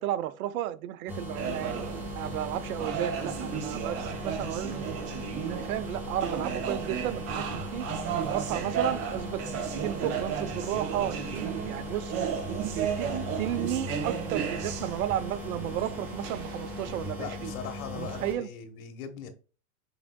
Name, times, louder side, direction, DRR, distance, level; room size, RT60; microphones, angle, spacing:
voice 1, 0.0-1.8 2.1-5.1 5.5-7.9 8.3-12.1 12.8-13.1 13.4-17.5 17.9-18.5, right 12 dB, 75° right, 0.6 m, -33 dB
sound 1, 1.1-18.4, left 1 dB, 5° right, 1.2 m, -39 dB
sound 2, 1.4-17.1, right 7 dB, 35° right, 0.7 m, -34 dB
voice 2, 7.7-8.1 17.2-19.3, left 7 dB, 70° left, 1.0 m, -40 dB
4.9 x 3.5 x 2.2 m
supercardioid pair, 130°, 43 cm